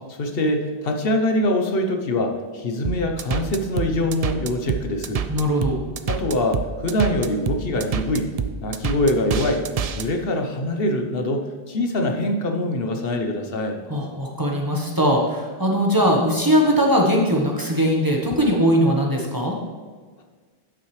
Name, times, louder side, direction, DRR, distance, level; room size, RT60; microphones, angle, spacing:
voice 1, 0.1-5.2 6.1-8.3 8.6-9.6 10.0-13.8, left 1 dB, 65° left, 4 dB, 1.1 m, -24 dB
sound 1, 2.8-10.1, right 6 dB, 50° right, 0.4 m, -27 dB
voice 2, 5.3-5.8 13.9-19.5, equal, 20° right, -1 dB, 1.1 m, -20 dB
11.5 x 6.1 x 3.2 m, 1.5 s
omnidirectional pair, 1.0 m